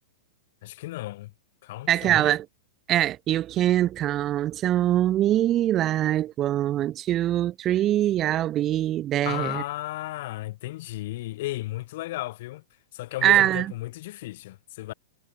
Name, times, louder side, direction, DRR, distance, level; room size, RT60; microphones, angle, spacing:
voice 1, 0.6-1.3 1.6-2.3 9.2-12.6 12.9-14.9, left 17 dB, 60° left, 1.3 m, -34 dB
voice 2, 1.9-2.5 2.9-9.6 13.2-13.7, right 13 dB, 30° right, 0.6 m, -23 dB
hypercardioid pair, 115°, 0 cm